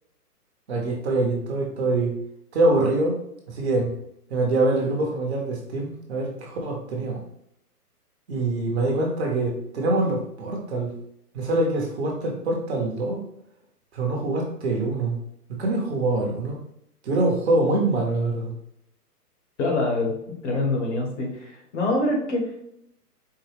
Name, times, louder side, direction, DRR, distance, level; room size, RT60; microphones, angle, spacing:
voice 1, 0.7-2.1 2.5-3.2 3.5-3.9 4.3-7.2 8.3-10.9 11.3-13.2 13.9-15.2 15.5-16.6 17.0-18.5, right 2 dB, 45° right, 0 dB, 0.9 m, -24 dB
voice 2, 19.6-20.1 20.4-22.7, left 2 dB, 50° left, 1 dB, 1.2 m, -25 dB
4.6 x 2.2 x 3.2 m, 0.74 s
hypercardioid pair, 155°, 47 cm